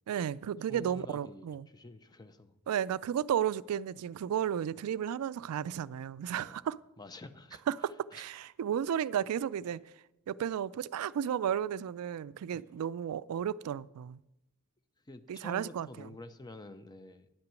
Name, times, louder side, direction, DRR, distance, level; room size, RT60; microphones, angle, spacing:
voice 1, 0.1-1.7 2.7-6.8 7.7-14.2 15.3-16.1, right 9 dB, 90° right, 0.3 m, -33 dB
voice 2, 0.7-2.6 6.4-6.6 7.0-8.2 9.7-9.8 12.5-12.7 15.0-17.3, left 2 dB, 20° left, 0.6 m, -49 dB
10.0 x 5.9 x 7.5 m
head